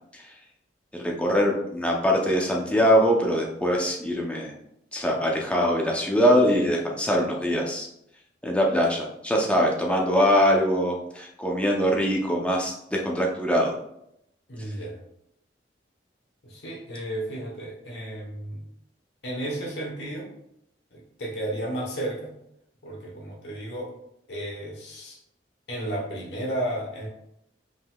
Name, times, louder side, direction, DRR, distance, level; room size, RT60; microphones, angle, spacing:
voice 1, 1.0-4.5 4.9-7.9 8.4-13.8, equal, 5° left, -1 dB, 0.6 m, -23 dB
voice 2, 14.5-15.0 16.4-18.6 19.2-20.3 20.9-22.3 22.8-23.9 24.3-25.2 25.7-27.1, right 1 dB, 75° left, -1 dB, 1.2 m, -33 dB
5.3 x 3.7 x 2.3 m, 0.77 s
head